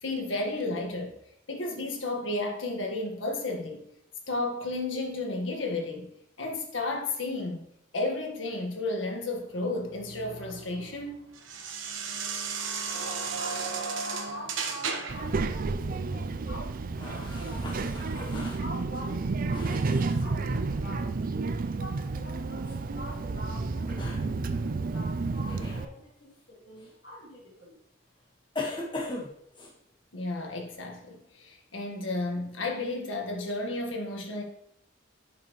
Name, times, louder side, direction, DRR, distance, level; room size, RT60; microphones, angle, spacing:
voice 1, 0.0-1.2 1.5-3.8 4.3-6.1 6.4-7.7 7.9-11.2 30.1-34.4, left 2 dB, 85° left, 1 dB, 1.7 m, -32 dB
sound 1, 9.5-15.3, right 5 dB, 90° right, 1.1 m, -35 dB
voice 2, 12.9-18.0 18.5-21.1 21.6-27.8, equal, 65° left, -10 dB, 2.6 m, -46 dB
Child speech kid speaking, 15.1-25.8, right 3 dB, 45° right, 0.4 m, -31 dB
sound 2, 17.0-20.2 22.6-22.8 23.8-24.2 25.5-25.9 26.8-26.9 28.5-29.7, left 2 dB, 25° left, 1.5 m, -39 dB
10.5 x 5.8 x 3.1 m, 0.74 s
head